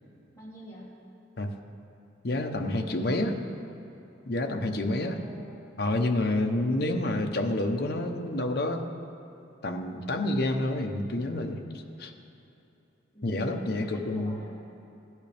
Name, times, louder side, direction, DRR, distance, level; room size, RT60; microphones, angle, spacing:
voice 1, 0.3-1.0 2.7-3.2 4.4-5.8 6.5-7.0 13.1-14.5, equal, 15° left, -9 dB, 3.2 m, -46 dB
voice 2, 2.2-3.4 4.3-5.2 5.8-8.9 9.6-11.6 12.0-12.1 13.2-14.4, left 1 dB, 55° left, 4 dB, 0.9 m, -28 dB
16.5 x 11.0 x 3.4 m, 2.9 s
head